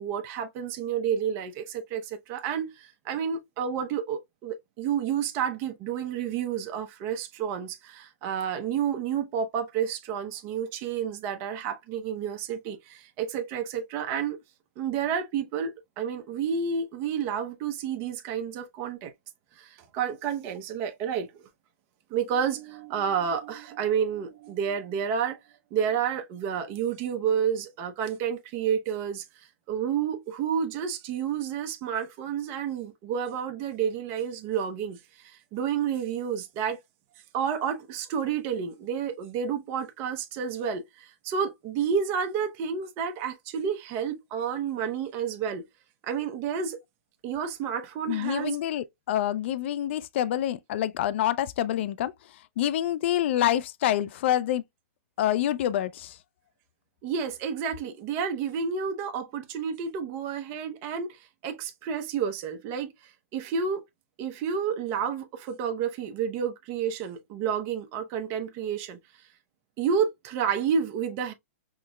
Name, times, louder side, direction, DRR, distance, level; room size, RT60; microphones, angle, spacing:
voice 1, 0.0-14.4 14.8-19.1 19.6-21.4 22.1-25.4 25.7-36.8 37.3-45.7 46.0-46.8 47.2-48.6 57.0-63.8 64.2-69.0 69.8-71.3, right 7 dB, 35° right, 0.6 m, -30 dB
voice 2, 48.1-52.1 52.6-54.6 55.2-56.1, left 12 dB, 55° left, 0.4 m, -27 dB
5.7 x 2.0 x 2.2 m
hypercardioid pair, 135°, 7 cm